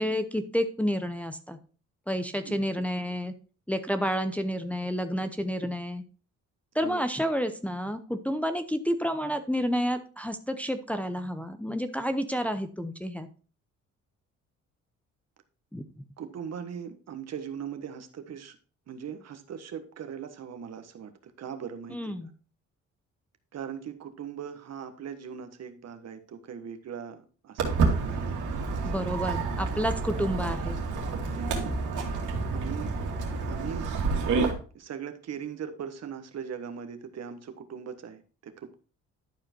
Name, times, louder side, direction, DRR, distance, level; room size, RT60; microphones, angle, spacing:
voice 1, 0.0-1.6 2.1-3.3 3.7-6.0 6.7-13.3 15.7-16.0 21.9-22.3 28.8-30.8, equal, 5° left, 7 dB, 0.7 m, -30 dB
voice 2, 16.2-18.6 18.9-22.3 23.5-29.1 31.3-31.8 32.5-33.0 33.4-33.8 34.2-38.7, right 7 dB, 55° right, 8 dB, 1.4 m, -40 dB
Walk footsteps, 27.6-34.5, right 4 dB, 80° right, 2.4 m, -29 dB
11.5 x 4.8 x 4.5 m, 0.37 s
cardioid pair, 90°, 30 cm